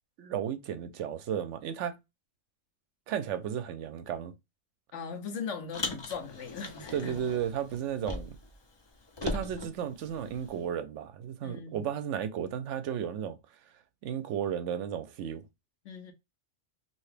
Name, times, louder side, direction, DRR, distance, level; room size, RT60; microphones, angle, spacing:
voice 1, 0.2-2.0 3.1-4.3 6.9-8.4 9.2-13.4 14.0-15.4, right 9 dB, 75° right, 0.9 m, -34 dB
voice 2, 4.9-7.1 11.4-11.8 15.8-16.1, left 5 dB, 75° left, 1.1 m, -39 dB
Car, 5.7-8.5 8.8-10.6, left 3 dB, 35° left, 0.4 m, -39 dB
2.9 x 2.8 x 3.3 m
omnidirectional pair, 1.3 m